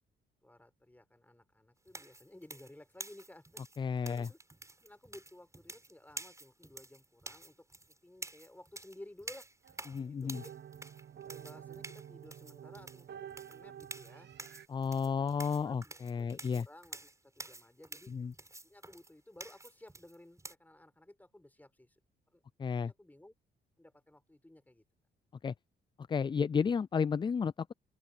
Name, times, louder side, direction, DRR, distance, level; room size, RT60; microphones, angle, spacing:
voice 1, 0.4-3.6 4.0-4.4 4.8-7.7 8.0-9.5 10.0-10.5 11.2-14.3 14.9-18.1 18.6-22.0 22.3-22.4 22.8-23.3 23.8-24.8, left 1 dB, 10° left, 4.9 m, -56 dB
sound 1, 1.9-20.5, right 2 dB, 15° right, 6.1 m, -49 dB
voice 2, 3.8-4.3 9.9-10.4 14.7-16.7 18.1-18.3 22.6-22.9 25.4-25.5 26.1-27.7, left 6 dB, 25° left, 0.3 m, -32 dB
sound 2, 9.6-14.7, right 10 dB, 60° right, 1.4 m, -49 dB
open air
cardioid pair, 90°, 20 cm